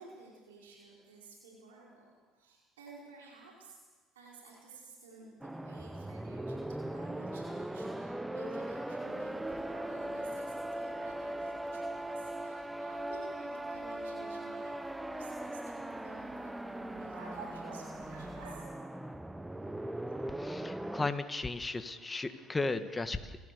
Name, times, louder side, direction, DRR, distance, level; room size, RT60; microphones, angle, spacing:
voice 1, 0.0-3.8 4.1-18.6 20.1-20.2, right 3 dB, 90° right, -3 dB, 5.0 m, -54 dB
sound 1, 5.4-21.1, right 1 dB, 10° right, 1.0 m, -39 dB
sound 2, 9.0-18.6, right 4 dB, 70° right, 7.0 m, -54 dB
voice 2, 20.3-23.4, left 3 dB, 20° left, 9 dB, 1.8 m, -35 dB
29.0 x 15.0 x 7.0 m, 1.4 s
hypercardioid pair, 65°, 0 cm